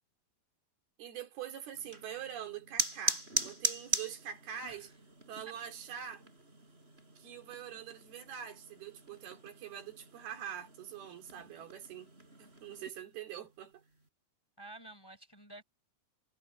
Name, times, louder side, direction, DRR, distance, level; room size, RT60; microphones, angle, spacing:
voice 1, 1.0-4.9 5.3-6.2 7.2-12.1 12.4-13.8, right 9 dB, 85° right, 4.8 m, -44 dB
sound 1, 1.7-12.9, right 2 dB, 15° right, 4.5 m, -40 dB
voice 2, 14.6-15.6, right 2 dB, 5° left, 4.8 m, -50 dB
omnidirectional pair, 4.3 m